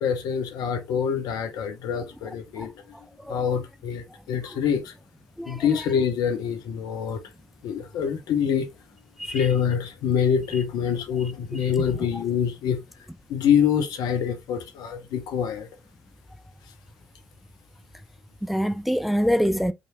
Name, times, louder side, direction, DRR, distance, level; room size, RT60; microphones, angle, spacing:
voice 1, 0.0-2.7 3.3-4.9 5.5-7.2 7.6-8.7 9.3-12.8 13.3-15.7, left 7 dB, 65° left, 0.8 m, -25 dB
voice 2, 18.4-19.7, equal, ahead, 0.4 m, -24 dB
5.1 x 3.1 x 2.6 m
hypercardioid pair, 40°, 7 cm